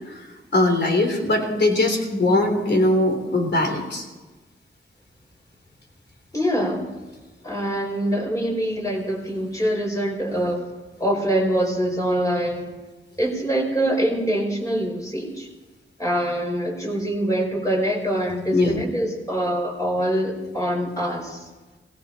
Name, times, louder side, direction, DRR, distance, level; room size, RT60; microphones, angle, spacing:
voice 1, 0.5-4.1 18.5-18.9, left 2 dB, 60° left, 4 dB, 3.6 m, -20 dB
voice 2, 6.3-6.9 7.4-10.7 11.0-12.7 13.2-15.5 16.0-21.5, right 1 dB, 15° left, -1 dB, 5.3 m, -24 dB
17.0 x 17.0 x 4.4 m, 1.2 s
cardioid pair, 65°, 20 cm